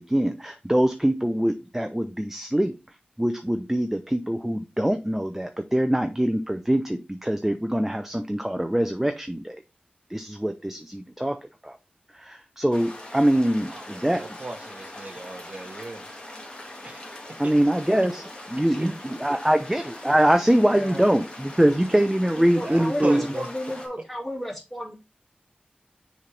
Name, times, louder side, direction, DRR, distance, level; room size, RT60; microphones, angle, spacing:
voice 1, 0.0-2.8 3.2-9.6 10.1-11.4 11.6-11.7 12.2-14.2 17.4-23.2, right 1 dB, 10° right, 0.6 m, -23 dB
sound 1, 12.7-23.9, left 1 dB, 30° left, 1.8 m, -42 dB
voice 2, 13.7-16.0 16.8-17.1 17.4-17.5 19.3-19.4 22.4-23.5, right 2 dB, 50° right, 1.0 m, -35 dB
voice 3, 18.6-18.9 20.6-21.1 21.9-22.0 22.4-24.9, left 1 dB, 10° left, 2.6 m, -34 dB
6.7 x 4.2 x 3.3 m
wide cardioid pair, 65°, 3 cm